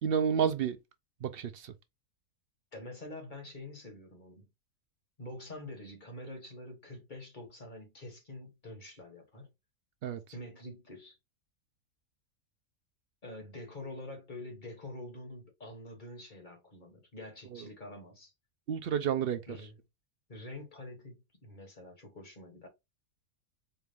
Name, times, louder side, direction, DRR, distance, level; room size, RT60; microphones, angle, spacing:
voice 1, 0.0-0.8 1.2-1.7 10.0-10.2 17.5-17.6 18.7-19.4, right 8 dB, 70° right, 0.5 m, -30 dB
voice 2, 2.7-4.5 5.2-9.5 10.3-11.2 13.2-18.3 19.5-19.8 20.3-22.7, left 1 dB, 35° left, 1.6 m, -46 dB
4.4 x 2.4 x 3.3 m
omnidirectional pair, 1.5 m